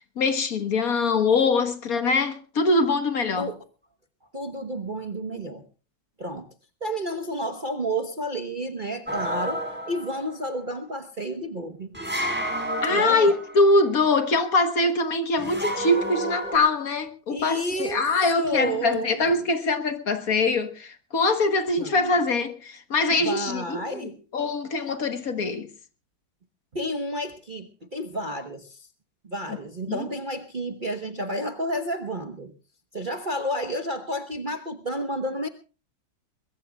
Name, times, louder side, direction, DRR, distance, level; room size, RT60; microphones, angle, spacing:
voice 1, 0.2-3.5 12.8-23.8 24.3-25.7 29.9-30.1, left 3 dB, 50° left, 1.6 m, -23 dB
voice 2, 4.3-5.6 6.2-6.5 6.8-9.6 9.9-11.9 12.9-13.3 17.3-18.0 18.3-19.5 21.8-22.1 23.2-24.2 26.7-28.9 29.2-32.5 32.9-35.5, right 1 dB, 30° right, 1.0 m, -31 dB
sound 1, 9.1-10.4 11.9-13.8 15.4-16.6, equal, 5° right, 4.3 m, -30 dB
22.0 x 21.5 x 2.3 m
omnidirectional pair, 2.1 m